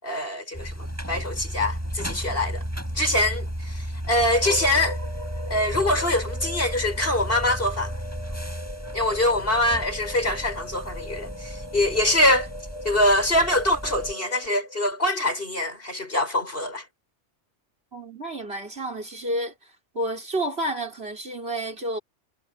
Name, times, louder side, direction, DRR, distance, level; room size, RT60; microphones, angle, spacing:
voice 1, 0.0-2.6 2.9-5.0 5.5-7.9 8.9-12.5 12.8-16.8, left 1 dB, 50° left, 7.4 m, -24 dB
sound 1, 0.5-14.1, equal, 15° right, 6.9 m, -34 dB
sound 2, 4.4-14.9, left 1 dB, 70° left, 7.3 m, -40 dB
voice 2, 17.9-22.0, right 1 dB, 55° right, 4.8 m, -30 dB
omnidirectional pair, 1.2 m